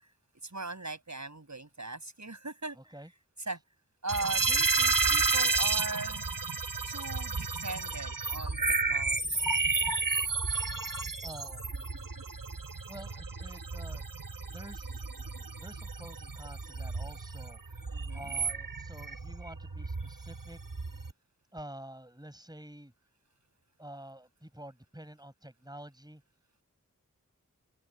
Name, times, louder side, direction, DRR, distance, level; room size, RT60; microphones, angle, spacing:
voice 1, 0.4-2.8 3.5-3.6 4.0-6.2 6.9-9.6 17.9-18.3, right 2 dB, 60° right, 6.6 m, -39 dB
voice 2, 2.7-3.1 6.9-7.0 11.2-11.6 12.8-14.0 14.5-20.6 21.5-22.9 23.8-26.2, right 1 dB, 10° right, 4.9 m, -49 dB
sound 1, 4.1-21.1, right 4 dB, 85° right, 1.7 m, -32 dB
wide cardioid pair, 45°, 32 cm